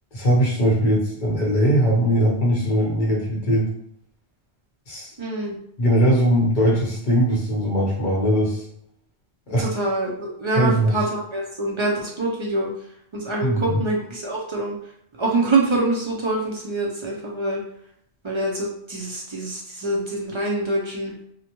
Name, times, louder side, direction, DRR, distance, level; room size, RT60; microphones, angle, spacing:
voice 1, 0.1-3.7 4.9-5.1 5.8-8.6 9.5-9.7 10.6-11.0 13.4-13.8, equal, 50° left, -3 dB, 1.0 m, -20 dB
voice 2, 5.2-5.6 9.6-12.7 13.1-14.7 15.2-17.6 18.2-21.1, right 2 dB, 45° right, -2 dB, 0.4 m, -25 dB
2.6 x 2.2 x 2.9 m, 0.71 s
omnidirectional pair, 1.1 m